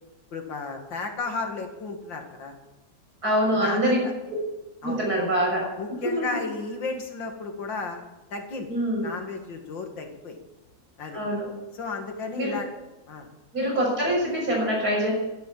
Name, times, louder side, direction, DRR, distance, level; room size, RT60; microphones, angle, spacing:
voice 1, 0.3-2.5 3.5-3.9 4.8-5.0 5.8-8.0 8.3-10.4 11.0-11.2 11.7-12.7 13.1-13.3, left 4 dB, 80° left, 4 dB, 2.7 m, -33 dB
voice 2, 3.2-4.0 4.8-5.6 5.9-6.4 8.7-9.1 11.1-11.5 12.4-12.6 13.5-15.1, equal, 50° right, -2 dB, 7.0 m, -24 dB
12.5 x 11.0 x 8.6 m, 1.0 s
omnidirectional pair, 2.0 m